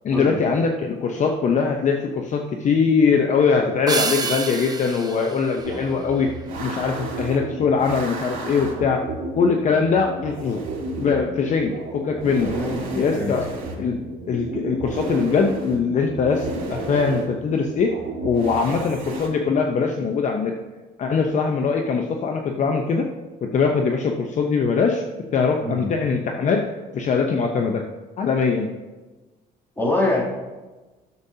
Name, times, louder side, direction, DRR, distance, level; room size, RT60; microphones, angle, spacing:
voice 1, 0.0-6.3 6.6-9.0 9.4-10.6 11.0-12.5 12.9-13.5 13.8-14.0 14.3-17.9 18.2-20.5 21.0-23.1 23.4-25.1 25.3-26.6 26.9-27.8 28.2-28.7, left 5 dB, 45° left, 3 dB, 0.8 m, -22 dB
sound 1, 3.9-6.5, right 4 dB, 20° right, 0.8 m, -29 dB
sound 2, 5.6-19.3, right 2 dB, 55° right, 2.9 m, -32 dB
voice 2, 25.6-25.9 29.8-30.2, left 2 dB, 10° left, -5 dB, 2.8 m, -24 dB
12.0 x 7.1 x 2.8 m, 1.2 s
cardioid pair, 110°, 17 cm